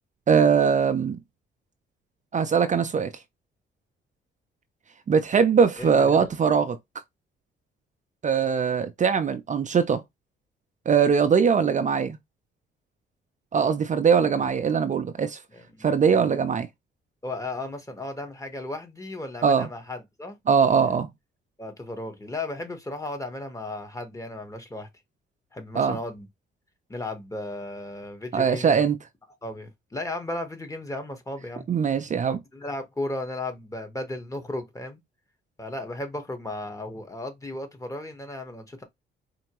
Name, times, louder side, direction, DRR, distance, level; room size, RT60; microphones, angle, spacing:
voice 1, 0.3-1.2 2.3-3.1 5.1-6.8 8.2-10.0 10.9-12.2 13.5-15.4 15.8-16.7 19.4-19.7 20.5-21.1 25.7-26.0 28.3-29.0 31.7-32.4, right 6 dB, 40° right, 0.6 m, -21 dB
voice 2, 5.8-6.3 14.3-14.5 15.5-16.3 17.2-20.4 21.6-24.9 25.5-26.3 26.9-28.8 29.4-31.7 32.5-35.0 35.6-38.8, left 2 dB, 15° left, 1.2 m, -35 dB
4.4 x 2.8 x 3.0 m
cardioid pair, 90°, 20 cm